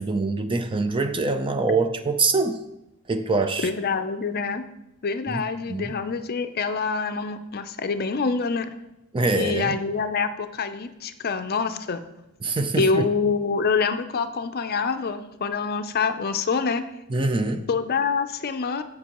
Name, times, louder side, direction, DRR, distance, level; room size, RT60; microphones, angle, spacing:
voice 1, 0.0-2.6 3.1-3.7 5.3-5.4 5.7-6.0 9.1-9.8 12.4-13.1 17.1-17.7, right 3 dB, 25° right, 7 dB, 0.5 m, -24 dB
voice 2, 3.6-4.6 5.0-8.7 9.4-12.0 12.8-16.8 17.7-18.8, left 5 dB, 45° left, 9 dB, 0.5 m, -26 dB
15.0 x 5.3 x 3.0 m, 0.93 s
head